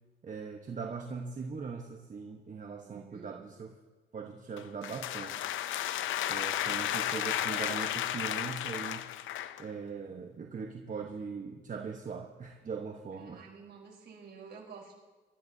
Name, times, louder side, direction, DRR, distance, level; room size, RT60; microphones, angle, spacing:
voice 1, 0.2-3.7 4.1-5.4 6.3-9.1 9.6-13.4, right 5 dB, 40° right, 2 dB, 1.2 m, -40 dB
voice 2, 2.8-3.4 13.1-14.9, right 5 dB, 60° right, -2 dB, 4.5 m, -50 dB
sound 1, 4.6-9.7, left 12 dB, 80° left, 0.6 m, -33 dB
25.5 x 13.0 x 2.8 m, 1.3 s
cardioid pair, 90°, 20 cm